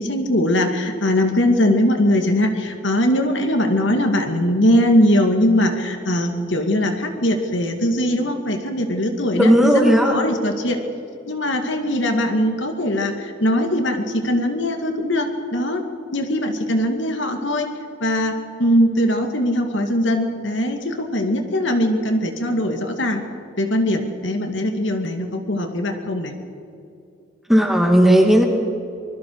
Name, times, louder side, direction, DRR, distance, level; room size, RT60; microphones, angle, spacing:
voice 1, 0.0-10.8 11.3-15.8 16.1-17.7 18.0-23.3 23.6-26.3, left 1 dB, 65° left, 5 dB, 2.2 m, -21 dB
voice 2, 9.4-10.2 27.5-28.4, equal, ahead, 2 dB, 2.2 m, -14 dB
25.5 x 21.0 x 4.8 m, 2.5 s
head